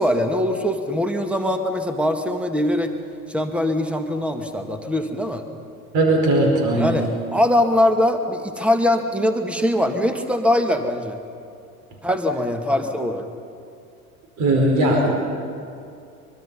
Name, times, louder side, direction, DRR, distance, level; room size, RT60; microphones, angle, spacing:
voice 1, 0.0-3.0 3.3-5.5 6.8-11.2 12.0-13.3, left 1 dB, 5° right, 6 dB, 1.8 m, -22 dB
voice 2, 5.9-7.0 14.4-15.2, right 1 dB, 40° right, 1 dB, 4.9 m, -18 dB
24.0 x 23.5 x 5.6 m, 2.5 s
figure-of-eight pair, 80°, 45 cm